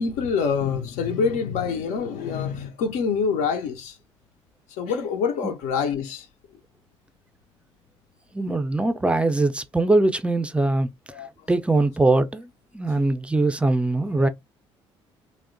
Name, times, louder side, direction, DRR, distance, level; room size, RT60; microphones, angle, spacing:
voice 1, 0.0-4.0 4.7-6.3 11.1-11.5, left 6 dB, 60° left, 0.4 m, -26 dB
voice 2, 8.3-10.9 11.5-12.5 12.7-14.3, right 2 dB, 10° right, 0.3 m, -21 dB
2.8 x 2.0 x 2.4 m
figure-of-eight pair, 50°, 14 cm